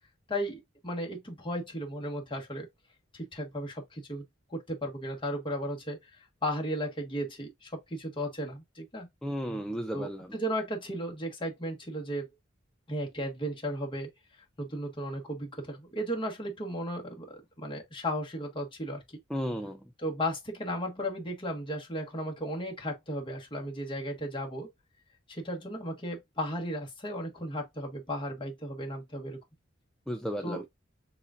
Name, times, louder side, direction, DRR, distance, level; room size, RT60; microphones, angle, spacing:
voice 1, 0.3-2.7 3.1-4.2 4.5-9.1 9.9-12.3 12.9-14.1 14.6-19.0 20.0-24.7 25.3-29.4 30.4-30.6, equal, 25° left, 1.4 m, -35 dB
voice 2, 9.2-10.3 19.3-19.8 30.1-30.7, equal, 5° left, 0.3 m, -34 dB
6.8 x 2.5 x 2.4 m
head